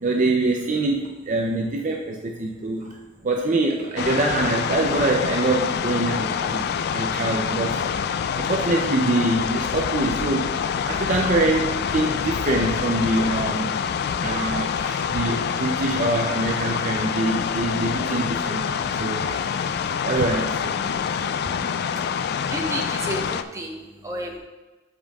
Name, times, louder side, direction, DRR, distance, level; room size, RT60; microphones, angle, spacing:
voice 1, 0.0-2.9 3.2-6.7 6.9-7.8 8.3-10.5 10.9-13.8 14.2-18.7 19.0-20.7 21.1-21.2, right 2 dB, 45° right, 1 dB, 0.5 m, -24 dB
sound 1, 4.0-23.4, left 7 dB, 55° left, 0.3 m, -26 dB
voice 2, 22.5-23.8 24.0-24.4, right 1 dB, 15° right, 0 dB, 0.9 m, -30 dB
13.0 x 5.2 x 2.3 m, 1.2 s
head